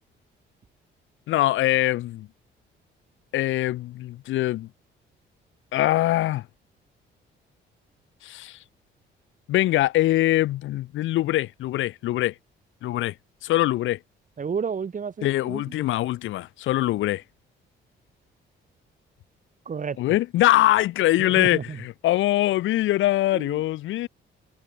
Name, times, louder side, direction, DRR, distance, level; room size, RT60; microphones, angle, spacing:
voice 1, 1.3-2.3 3.3-4.7 5.7-6.4 8.2-8.6 9.5-12.3 12.8-13.1 13.4-14.0 15.2-17.2 20.0-24.1, left 15 dB, 80° left, 0.7 m, -23 dB
voice 2, 14.4-15.8 19.7-20.0 21.2-21.8 23.3-23.6, right 6 dB, 40° right, 3.6 m, -31 dB
cardioid pair, 90°, 20 cm